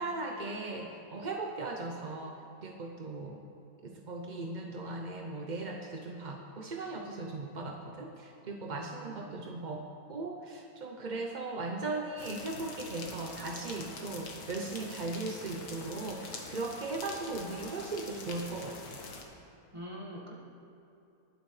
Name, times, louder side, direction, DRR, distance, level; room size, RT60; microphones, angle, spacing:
voice 1, 0.0-3.4 3.8-9.8 10.1-19.0, right 3 dB, 50° right, 1 dB, 0.5 m, -38 dB
voice 2, 8.9-9.4 19.7-20.3, equal, 20° right, -3 dB, 1.7 m, -44 dB
sound 1, 12.2-19.2, left 3 dB, 70° left, 1.6 m, -45 dB
20.5 x 8.0 x 3.2 m, 2.7 s
omnidirectional pair, 1.7 m